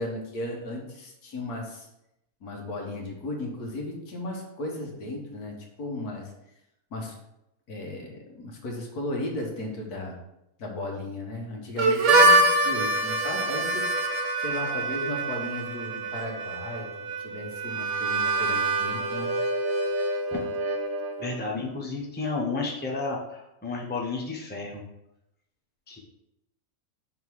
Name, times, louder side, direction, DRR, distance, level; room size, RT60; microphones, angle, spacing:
voice 1, 0.0-1.9 2.4-6.3 6.9-7.1 7.7-10.2 10.6-13.8 14.4-16.9 17.2-19.3, left 1 dB, 85° left, 0 dB, 1.8 m, -35 dB
Harmonica, 11.8-21.4, right 2 dB, 60° right, 1.0 m, -25 dB
voice 2, 21.2-24.8 25.9-26.0, left 3 dB, 10° left, -1 dB, 0.8 m, -32 dB
5.7 x 3.8 x 4.7 m, 0.85 s
omnidirectional pair, 1.6 m